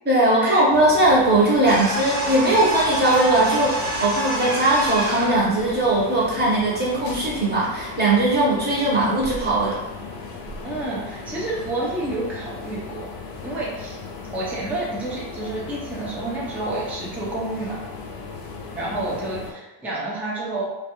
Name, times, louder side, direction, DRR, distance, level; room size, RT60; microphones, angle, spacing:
voice 1, 0.0-9.8, right 2 dB, 20° right, -5 dB, 0.7 m, -19 dB
sound 1, 0.7-19.5, left 3 dB, 50° left, 0.6 m, -37 dB
sound 2, 1.6-5.4, right 1 dB, 90° right, 1.0 m, -27 dB
voice 2, 10.6-13.1 13.4-14.0 14.3-17.8 18.7-20.6, right 2 dB, 5° right, -6 dB, 0.3 m, -29 dB
2.3 x 2.2 x 2.9 m, 1.1 s
cardioid pair, 125°, 48 cm